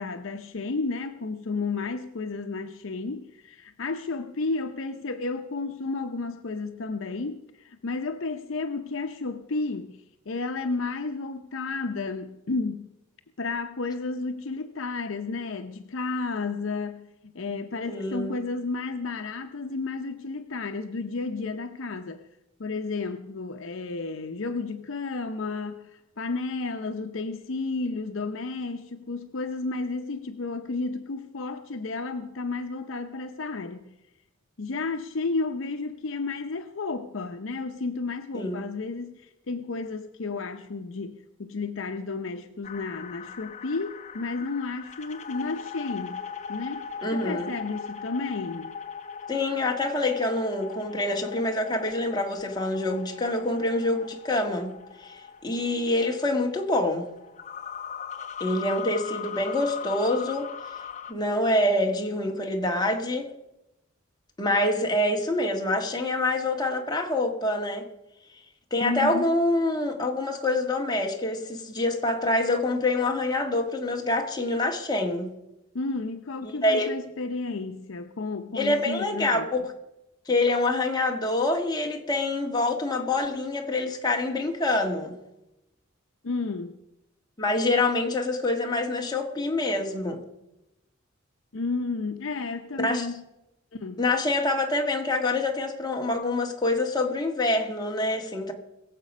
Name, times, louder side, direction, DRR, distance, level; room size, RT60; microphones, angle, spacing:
voice 1, 0.0-12.9 13.4-22.2 22.6-33.9 34.6-46.2 46.5-48.8 68.8-69.3 75.7-79.5 86.2-86.8 91.5-93.2 93.7-94.0, left 3 dB, 75° left, 0.7 m, -32 dB
voice 2, 17.9-18.3 38.3-38.6 47.0-47.5 49.3-54.7 55.0-57.1 58.4-60.5 61.1-63.3 64.4-67.9 68.7-75.3 76.4-76.9 78.5-79.6 80.3-85.2 87.4-90.2 92.8-93.1 94.0-98.5, left 2 dB, 20° left, 1.6 m, -26 dB
sound 1, 42.6-61.1, left 7 dB, 35° left, 1.0 m, -40 dB
22.0 x 7.6 x 5.3 m
head